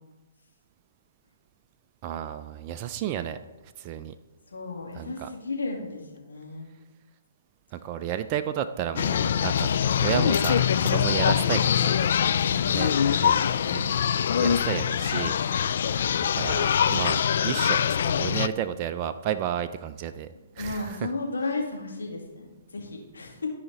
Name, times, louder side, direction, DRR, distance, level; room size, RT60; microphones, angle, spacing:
voice 1, 2.0-3.4 3.8-4.1 4.9-5.3 7.7-9.7 10.0-12.1 12.7-12.9 13.2-13.3 13.7-13.9 14.4-15.4 15.7-16.0 16.3-20.3 20.6-21.0, right 10 dB, 35° right, 9 dB, 0.4 m, -32 dB
voice 2, 4.5-6.7 20.6-23.5, left 3 dB, 80° left, 0 dB, 2.3 m, -35 dB
sound 1, 9.0-18.5, left 8 dB, 60° left, 0.3 m, -23 dB
14.0 x 5.0 x 4.0 m, 1.2 s
hypercardioid pair, 130°, 0 cm